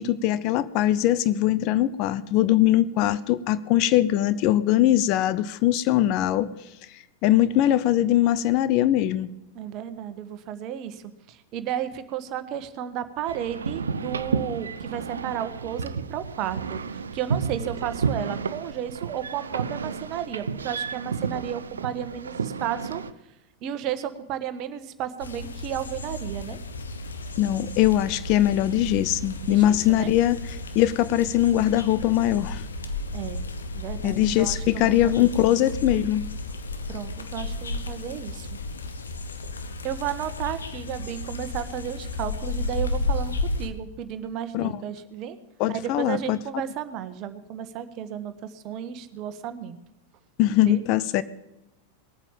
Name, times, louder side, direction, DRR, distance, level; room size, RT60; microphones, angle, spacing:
voice 1, 0.0-6.5 7.2-9.3 27.4-30.4 30.7-32.6 34.0-36.3 44.5-44.7 45.6-46.4 50.4-51.2, left 13 dB, 40° left, 15 dB, 0.7 m, -21 dB
voice 2, 9.5-23.0 23.6-26.6 29.5-30.1 33.1-35.6 36.9-38.6 39.8-45.4 45.7-49.8 50.7-50.8, right 10 dB, 40° right, 11 dB, 1.4 m, -33 dB
sound 1, 13.3-23.1, right 5 dB, 70° right, 0.7 m, -31 dB
sound 2, 25.2-43.7, left 2 dB, 70° left, 1.3 m, -33 dB
20.0 x 9.0 x 7.5 m, 0.91 s
figure-of-eight pair, 90°, 0 cm